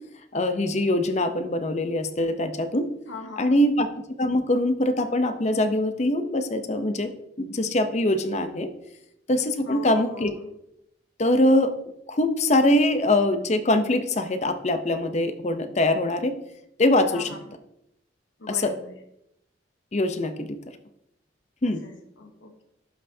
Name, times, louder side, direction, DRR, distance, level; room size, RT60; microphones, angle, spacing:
voice 1, 0.3-2.9 3.4-3.9 4.2-7.1 7.4-8.7 9.3-10.4 11.2-11.7 12.1-16.4 16.8-17.3 18.5-18.7 19.9-20.6 21.6-21.8, left 1 dB, 35° left, 9 dB, 0.6 m, -23 dB
voice 2, 3.1-3.6 9.6-10.5 17.1-17.5 18.4-19.0 21.6-22.6, left 3 dB, 90° left, 5 dB, 1.1 m, -41 dB
12.0 x 5.6 x 2.7 m, 0.80 s
head